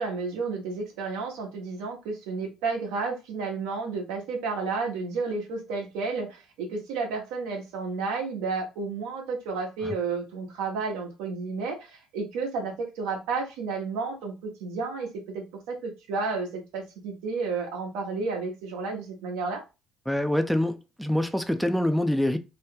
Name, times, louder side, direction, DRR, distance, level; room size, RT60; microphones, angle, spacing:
voice 1, 0.0-19.6, right 4 dB, 80° right, 1.0 m, -32 dB
voice 2, 20.1-22.4, left 1 dB, ahead, 0.4 m, -25 dB
3.0 x 2.2 x 3.2 m
hypercardioid pair, 65°, 0 cm